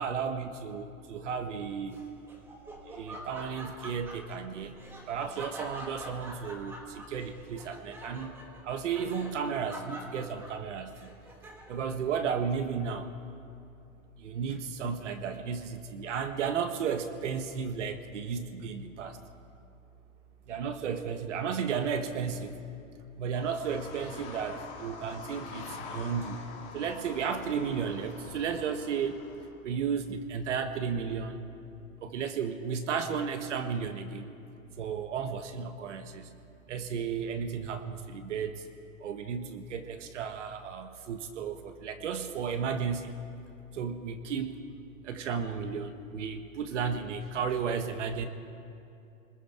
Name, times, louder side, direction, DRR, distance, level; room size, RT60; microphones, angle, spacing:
voice 1, 0.0-2.1 2.9-8.4 8.6-11.2 11.7-13.1 14.2-19.2 20.5-22.6 23.2-26.4 26.7-29.2 29.6-31.4 32.0-34.3 34.8-36.4 36.7-38.6 39.0-43.1 43.7-44.6 45.0-48.3, right 6 dB, 55° right, 8 dB, 1.5 m, -34 dB
Laughter, 1.9-11.9, right 1 dB, 5° right, 1.1 m, -46 dB
sound 1, 23.3-29.5, left 4 dB, 15° left, 2.0 m, -45 dB
29.5 x 20.5 x 4.4 m, 2.6 s
hypercardioid pair, 165°, 43 cm